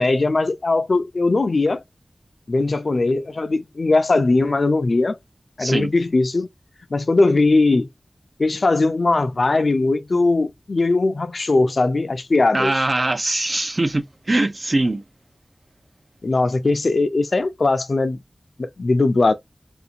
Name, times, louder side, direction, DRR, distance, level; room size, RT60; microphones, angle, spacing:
voice 1, 0.0-1.8 2.5-5.2 5.6-6.5 6.9-7.9 8.4-12.9 16.2-18.2 18.6-19.3, left 3 dB, 70° left, 0.5 m, -19 dB
voice 2, 5.6-5.9 12.5-15.0, right 2 dB, 50° right, 0.6 m, -22 dB
3.5 x 2.5 x 2.8 m
cardioid pair, 45°, 0 cm